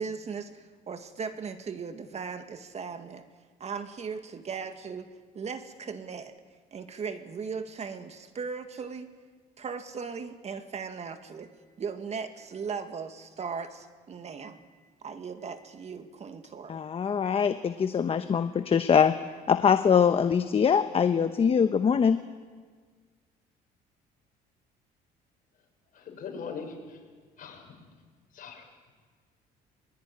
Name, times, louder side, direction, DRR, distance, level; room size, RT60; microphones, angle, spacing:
voice 1, 0.0-3.2 3.6-5.1 5.3-6.3 6.7-9.1 9.6-16.8, right 5 dB, 40° right, 8 dB, 1.9 m, -38 dB
voice 2, 16.7-22.2, left 7 dB, 35° left, 9 dB, 1.1 m, -23 dB
voice 3, 25.9-27.0 27.4-27.7 28.3-28.6, left 5 dB, 55° left, 2 dB, 6.9 m, -40 dB
22.5 x 21.5 x 9.9 m, 1.5 s
cardioid pair, 110°, 17 cm